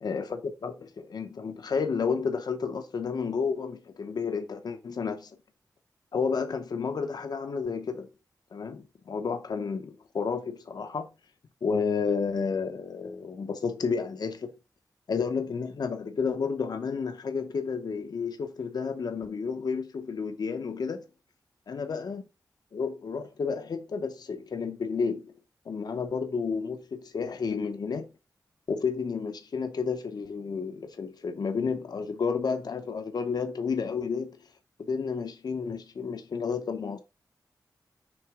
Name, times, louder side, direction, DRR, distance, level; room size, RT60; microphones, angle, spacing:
voice 1, 0.0-5.3 6.1-8.1 8.5-11.1 11.6-14.5 15.1-21.0 21.7-22.3 22.7-25.3 25.7-28.1 28.7-34.4 34.8-37.0, left 5 dB, 75° left, 0.8 m, -31 dB
6.4 x 3.4 x 4.8 m
wide cardioid pair, 115°, 7 cm